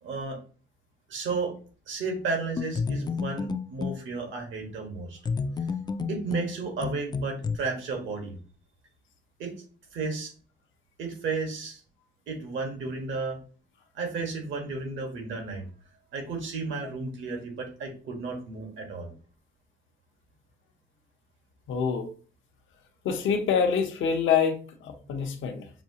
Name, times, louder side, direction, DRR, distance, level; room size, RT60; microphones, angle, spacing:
voice 1, 0.0-0.4 1.1-1.5 1.9-5.2 6.1-8.4 9.4-9.5 9.9-10.3 11.0-11.8 12.3-13.4 13.9-15.6 16.1-19.1, right 4 dB, 75° right, 3 dB, 1.4 m, -33 dB
sound 1, 2.6-4.0 5.3-7.6, left 5 dB, 20° left, 0.3 m, -31 dB
voice 2, 21.7-22.1 23.0-25.7, left 6 dB, 75° left, 4 dB, 0.8 m, -26 dB
5.9 x 2.4 x 2.8 m, 0.41 s
cardioid pair, 90°, 20 cm